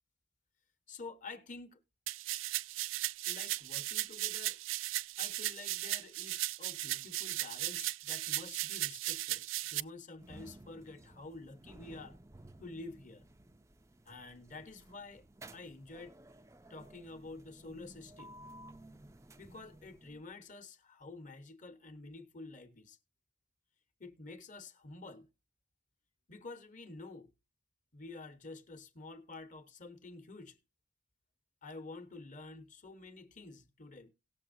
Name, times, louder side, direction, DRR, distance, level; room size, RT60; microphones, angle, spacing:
voice 1, 0.9-1.8 3.3-4.6 5.2-12.2 12.6-13.3 14.1-15.3 15.5-16.2 16.7-18.4 19.4-23.0 24.0-25.3 26.3-27.3 27.9-30.6 31.6-34.1, left 3 dB, 40° left, 1.1 m, -49 dB
sound 1, 2.1-9.8, right 16 dB, 85° right, 0.4 m, -36 dB
sound 2, 10.2-20.3, right 1 dB, 15° right, 0.5 m, -55 dB
18.0 x 7.0 x 2.6 m
head